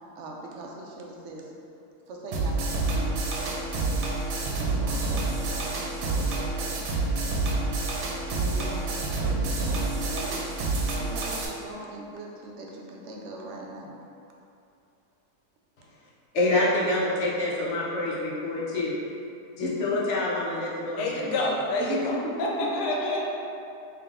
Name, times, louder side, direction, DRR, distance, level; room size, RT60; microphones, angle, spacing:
voice 1, 0.2-1.5 2.1-4.1 4.5-5.6 6.0-7.8 8.2-10.4 11.0-14.0 19.6-20.0 21.8-22.3, right 1 dB, 70° right, -1 dB, 0.7 m, -39 dB
sound 1, 2.3-11.5, right 3 dB, 85° right, 1.2 m, -28 dB
voice 2, 16.3-19.0 19.6-21.4, left 2 dB, 60° left, -6 dB, 0.8 m, -27 dB
voice 3, 21.0-23.3, left 1 dB, 80° left, -2 dB, 1.2 m, -28 dB
3.6 x 2.9 x 3.4 m, 2.6 s
omnidirectional pair, 1.7 m